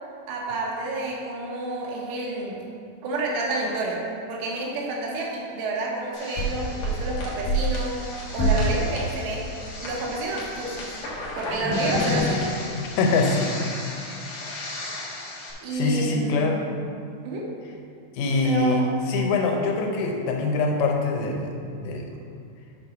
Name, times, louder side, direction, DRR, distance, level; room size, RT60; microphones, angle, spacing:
voice 1, 0.3-2.6 3.0-8.0 8.3-9.5 9.8-10.9 11.4-12.5 15.6-16.7 17.2-17.5 18.4-18.8, right 2 dB, 75° right, -3 dB, 3.3 m, -29 dB
sound 1, 6.1-15.5, equal, 70° left, 2.0 m, -29 dB
voice 2, 12.8-13.5 15.7-16.6 18.2-18.8 19.1-21.5 21.9-22.1, left 3 dB, 85° left, 1 dB, 3.5 m, -23 dB
8.2 x 4.1 x 5.8 m, 2.3 s
omnidirectional pair, 5.8 m